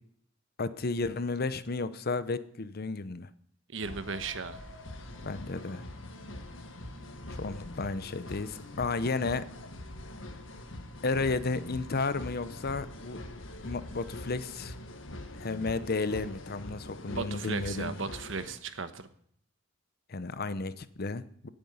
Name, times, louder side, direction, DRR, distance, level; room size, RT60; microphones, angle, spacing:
voice 1, 0.6-3.3 5.2-5.8 7.3-9.5 11.0-13.2 13.6-14.8 15.3-17.9 20.1-21.5, left 3 dB, 50° left, 14 dB, 0.8 m, -33 dB
voice 2, 3.7-4.6 17.1-19.1, right 4 dB, 70° right, 10 dB, 1.2 m, -36 dB
sound 1, 3.8-18.6, left 1 dB, 80° left, 1.6 m, -44 dB
17.5 x 9.0 x 5.5 m, 0.66 s
head